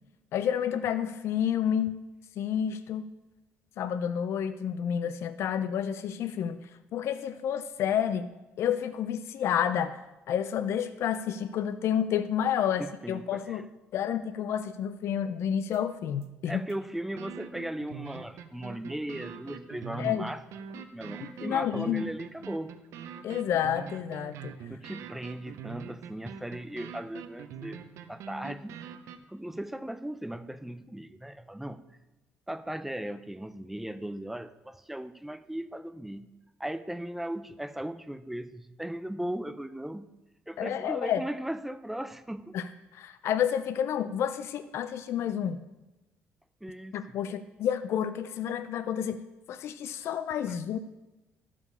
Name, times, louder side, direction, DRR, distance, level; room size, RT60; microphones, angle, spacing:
voice 1, 0.3-2.0 2.4-3.1 3.8-8.3 8.6-10.0 10.3-13.7 13.9-16.6 20.0-20.3 21.2-22.1 23.2-24.5 40.6-41.2 42.5-42.7 42.9-45.6 46.9-49.2 49.5-50.8, left 9 dB, 65° left, 11 dB, 0.4 m, -30 dB
voice 2, 12.8-13.6 16.5-20.4 20.7-22.7 24.7-27.8 28.1-28.9 29.3-31.8 32.5-36.3 36.6-40.1 40.5-42.5 46.6-47.0 50.5-50.6, right 1 dB, 5° right, 13 dB, 0.4 m, -37 dB
sound 1, 15.7-15.8 16.2-16.3 16.7-16.8 17.2-29.2, right 7 dB, 80° right, 0.6 m, -43 dB
11.5 x 4.9 x 5.4 m, 1.0 s
cardioid pair, 125°, 5 cm